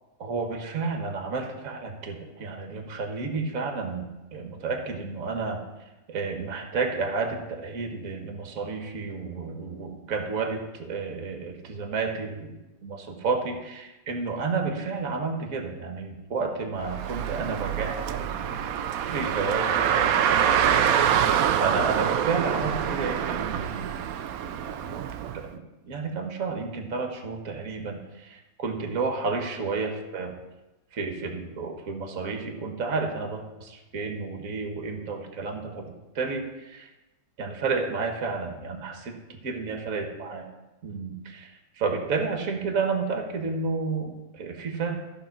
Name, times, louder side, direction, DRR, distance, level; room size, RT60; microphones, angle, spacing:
voice 1, 0.2-5.6 6.1-12.5 12.8-24.1 24.6-25.0 25.3-30.4 30.9-36.9 37.4-40.4 40.8-45.1, right 4 dB, 50° right, 4 dB, 1.7 m, -31 dB
Car, 16.8-25.4, right 9 dB, 80° right, 0.8 m, -25 dB
14.5 x 4.9 x 5.9 m, 1.0 s
omnidirectional pair, 2.1 m